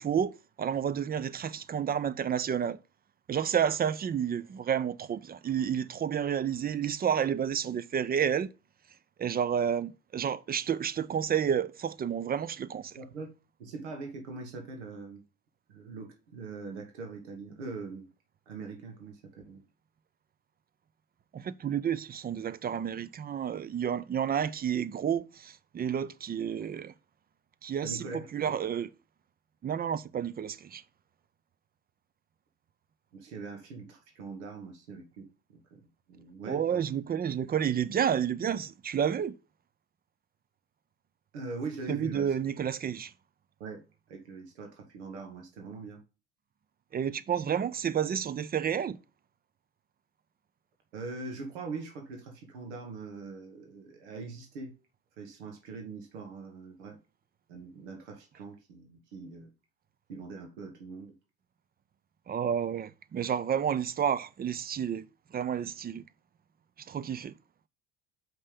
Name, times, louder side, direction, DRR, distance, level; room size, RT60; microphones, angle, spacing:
voice 1, 0.0-2.8 3.3-8.5 9.2-13.0 21.3-26.9 27.6-28.0 28.3-28.9 29.6-30.8 36.4-39.3 41.9-43.1 46.9-49.0 62.3-65.1 65.3-66.1 66.8-67.4, right 8 dB, 30° right, 0.5 m, -30 dB
voice 2, 13.0-13.3 13.6-15.2 15.7-18.1 18.5-19.6 27.8-28.5 33.1-35.8 36.1-36.8 41.3-42.3 43.6-43.8 44.1-46.0 50.9-54.7 55.2-57.0 57.5-59.5 60.1-61.1, right 3 dB, 80° right, 1.5 m, -42 dB
5.8 x 5.4 x 5.1 m
hypercardioid pair, 65°, 33 cm